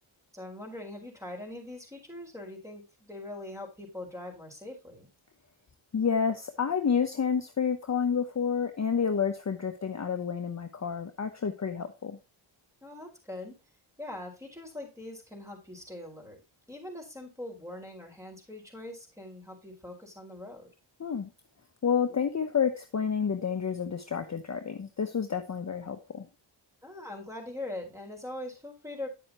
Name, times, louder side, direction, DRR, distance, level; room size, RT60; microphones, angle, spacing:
voice 1, 0.3-5.1 12.8-13.6 14.0-16.4 16.7-20.7 26.8-29.1, left 1 dB, 5° right, 1 dB, 5.0 m, -42 dB
voice 2, 5.9-12.2 21.0-21.3 21.8-26.3, left 6 dB, 35° left, 7 dB, 0.9 m, -29 dB
10.0 x 7.8 x 3.0 m, 0.28 s
cardioid pair, 65°, 49 cm